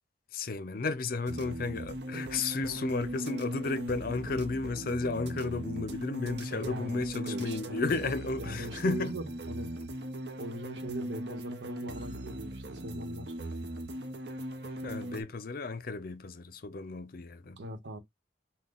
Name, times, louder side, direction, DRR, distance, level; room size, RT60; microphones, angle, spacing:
voice 1, 0.3-9.2 14.8-17.6, left 3 dB, 50° left, 0.5 m, -33 dB
sound 1, 1.3-15.2, right 1 dB, 65° right, 0.8 m, -39 dB
voice 2, 6.5-8.1 8.4-9.8 10.4-13.4 17.6-18.0, right 1 dB, 80° right, 1.1 m, -41 dB
5.8 x 2.2 x 3.7 m
head